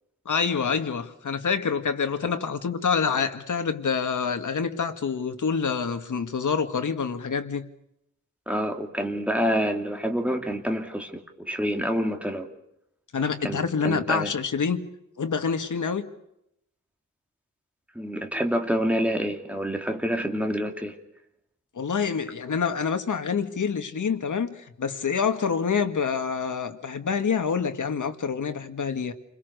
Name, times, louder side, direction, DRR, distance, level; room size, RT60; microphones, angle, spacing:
voice 1, 0.3-7.6 13.1-16.1 21.8-29.1, left 6 dB, 75° left, 7 dB, 1.9 m, -27 dB
voice 2, 8.5-12.5 13.4-14.3 17.9-21.0, equal, 5° right, 4 dB, 2.5 m, -27 dB
29.0 x 22.0 x 6.7 m, 0.81 s
wide cardioid pair, 145°, 30 cm